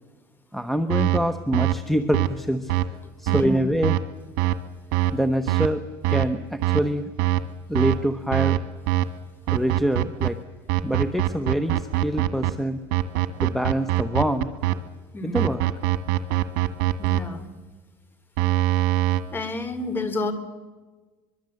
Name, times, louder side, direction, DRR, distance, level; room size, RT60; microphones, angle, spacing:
voice 1, 0.5-2.7 3.2-4.0 5.1-5.8 6.1-7.1 7.7-8.6 9.5-10.4 10.8-12.8 13.4-14.5 15.2-15.6, equal, ahead, 10 dB, 1.1 m, -25 dB
sound 1, 0.9-1.2 1.5-1.7 2.1-2.3 2.7-2.9 3.3-3.4 3.8-4.0 4.4-4.5 4.9-5.1 5.5-5.7 6.0-6.3 6.6-6.8 7.2-7.4 7.7-8.0 8.3-8.6 8.9-9.0 9.5-10.3 10.7-12.5 12.9-14.7 15.4-17.2 18.4-19.2, right 17 dB, 85° right, 1.6 m, -22 dB
voice 2, 3.3-3.6 15.1-15.5 17.0-17.5 19.3-20.3, left 2 dB, 20° left, 11 dB, 3.2 m, -30 dB
24.5 x 22.0 x 7.9 m, 1.3 s
cardioid pair, 130°, 10 cm